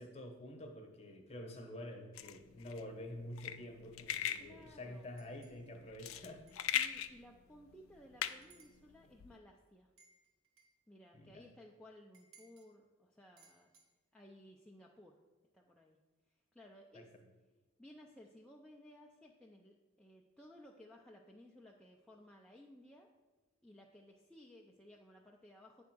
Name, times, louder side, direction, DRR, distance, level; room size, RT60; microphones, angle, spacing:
voice 1, 0.0-6.4 11.1-11.4 16.9-17.0, left 1 dB, 30° left, 4 dB, 0.9 m, -48 dB
sound 1, 2.1-9.3, left 10 dB, 75° left, 0.4 m, -41 dB
voice 2, 4.4-5.1 6.7-9.9 10.9-13.7 14.1-15.2 15.5-16.0 16.3-17.1 17.8-23.1 23.6-25.8, left 1 dB, 5° left, -1 dB, 0.3 m, -58 dB
sound 2, 5.2-5.6 6.5-6.6 7.1-7.2 8.3-8.8 10.0-10.8 12.1-12.7 13.4-13.9, right 5 dB, 75° right, 1.5 m, -66 dB
8.5 x 3.5 x 6.0 m, 1.2 s
head